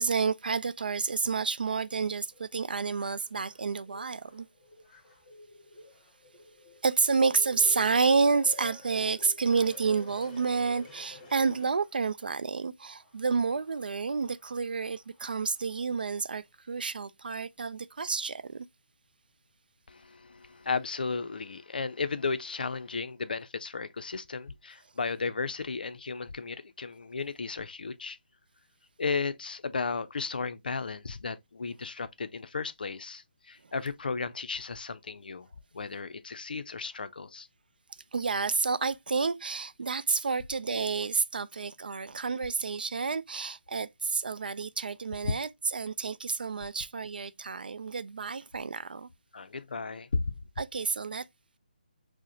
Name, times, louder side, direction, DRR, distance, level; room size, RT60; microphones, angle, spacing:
voice 1, 0.0-4.5 6.8-18.7 33.6-33.7 38.1-49.1 50.6-51.3, right 4 dB, 75° right, 0.4 m, -29 dB
sound 1, 2.3-12.2 12.8-15.8 16.5-16.6, left 2 dB, 15° left, 1.7 m, -51 dB
voice 2, 19.9-28.2 29.0-35.5 35.7-37.5 49.3-50.3, left 4 dB, 70° left, 0.4 m, -34 dB
4.7 x 2.1 x 2.6 m
figure-of-eight pair, 150°, 5 cm